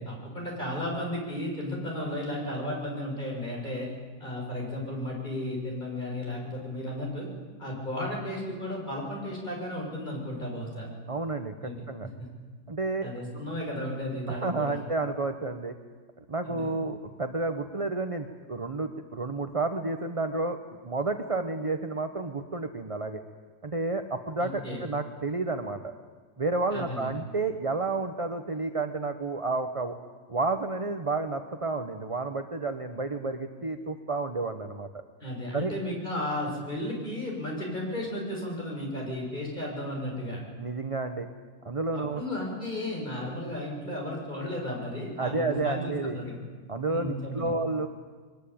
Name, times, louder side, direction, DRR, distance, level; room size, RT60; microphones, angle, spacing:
voice 1, 0.0-3.9 4.2-7.3 7.6-10.9 11.6-11.8 13.0-14.8 16.4-16.7 24.4-24.8 26.7-27.2 35.2-40.4 41.9-46.4 46.9-47.5, left 1 dB, 25° left, -2 dB, 7.2 m, -34 dB
voice 2, 11.1-12.1 12.7-13.1 14.3-15.7 16.3-20.6 20.8-23.2 23.6-25.9 26.4-29.9 30.3-35.0 35.5-35.7 40.6-41.3 41.6-42.2 45.2-46.2 46.7-47.9, right 3 dB, 25° right, 7 dB, 0.9 m, -31 dB
22.5 x 22.0 x 8.7 m, 1.4 s
omnidirectional pair, 2.0 m